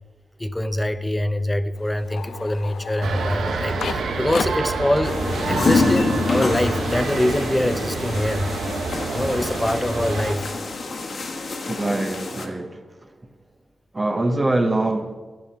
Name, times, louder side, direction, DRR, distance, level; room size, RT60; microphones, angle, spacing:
voice 1, 0.4-5.2 5.5-8.5 9.1-10.5, left 1 dB, 15° left, 0.9 m, -24 dB
sound 1, 1.7-6.9 7.2-8.7, left 6 dB, 75° left, 0.7 m, -36 dB
sound 2, 3.0-10.3, right 3 dB, 90° right, 1.5 m, -27 dB
sound 3, 5.0-12.5, left 3 dB, 60° left, 1.8 m, -26 dB
voice 2, 11.7-13.1 13.9-15.2, right 2 dB, 30° right, 1.4 m, -24 dB
12.5 x 11.0 x 5.9 m
cardioid pair, 75°, 0 cm